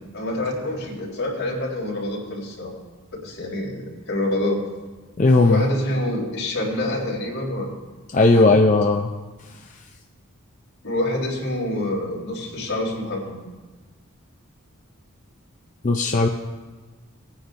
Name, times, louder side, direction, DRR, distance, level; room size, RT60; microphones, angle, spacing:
voice 1, 0.1-2.7 3.2-4.6 5.4-7.7 8.2-8.6 10.8-13.5, left 1 dB, 75° left, -4 dB, 3.7 m, -27 dB
voice 2, 5.2-5.6 8.1-9.1 15.8-16.3, left 2 dB, 35° left, 2 dB, 0.5 m, -16 dB
20.0 x 9.8 x 2.6 m, 1.3 s
head